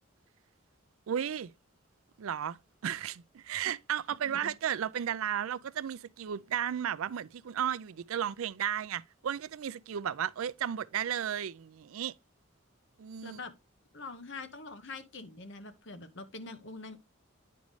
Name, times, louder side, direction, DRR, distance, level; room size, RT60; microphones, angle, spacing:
voice 1, 1.1-1.5 2.2-2.6 2.8-12.1 13.0-13.4, right 9 dB, 80° right, 0.4 m, -34 dB
voice 2, 4.2-4.6 13.2-13.5 13.9-17.0, left 3 dB, 60° left, 1.0 m, -44 dB
9.3 x 5.3 x 3.1 m
head